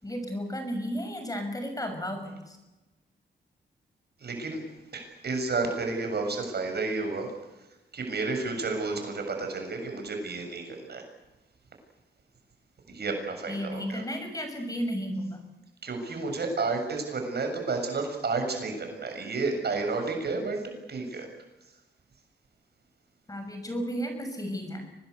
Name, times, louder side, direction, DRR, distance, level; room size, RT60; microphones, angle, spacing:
voice 1, 0.0-2.6 13.5-15.4 23.3-24.8, equal, 20° left, 6 dB, 6.7 m, -33 dB
voice 2, 4.2-4.6 4.9-7.3 7.9-11.0 12.9-14.0 15.8-20.6 20.9-21.3, right 3 dB, 60° right, 4 dB, 7.1 m, -31 dB
24.5 x 20.5 x 8.3 m, 1.0 s
cardioid pair, 90°, 19 cm